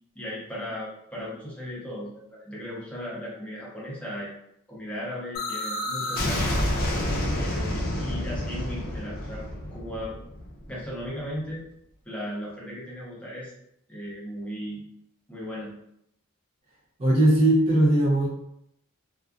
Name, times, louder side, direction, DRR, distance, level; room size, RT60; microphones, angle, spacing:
voice 1, 0.1-4.3 4.7-6.6 7.3-10.2 10.7-11.6 12.1-13.5 13.9-14.8 15.3-15.7, equal, 5° left, -7 dB, 0.7 m, -36 dB
sound 1, 5.3-11.1, left 1 dB, 45° left, 0.6 m, -29 dB
voice 2, 17.0-18.3, right 1 dB, 25° right, -5 dB, 0.5 m, -19 dB
2.5 x 2.4 x 2.3 m, 0.77 s
head